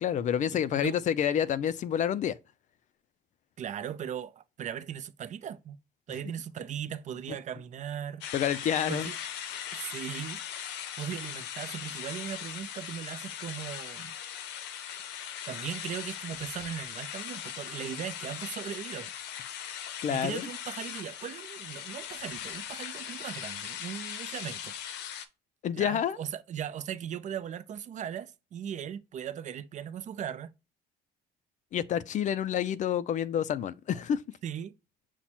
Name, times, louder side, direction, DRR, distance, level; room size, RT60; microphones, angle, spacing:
voice 1, 0.0-2.4 8.3-9.1 20.0-20.5 25.6-26.2 31.7-34.2, left 9 dB, 45° left, 0.4 m, -28 dB
voice 2, 0.5-1.0 3.6-5.8 6.1-8.2 8.9-9.1 9.7-10.4 11.0-14.1 15.5-19.1 20.1-24.8 25.7-30.5 34.4-34.7, right 9 dB, 45° right, 0.5 m, -38 dB
sound 1, 8.2-25.3, left 9 dB, 90° left, 0.6 m, -39 dB
5.8 x 2.1 x 4.2 m
cardioid pair, 110°, 17 cm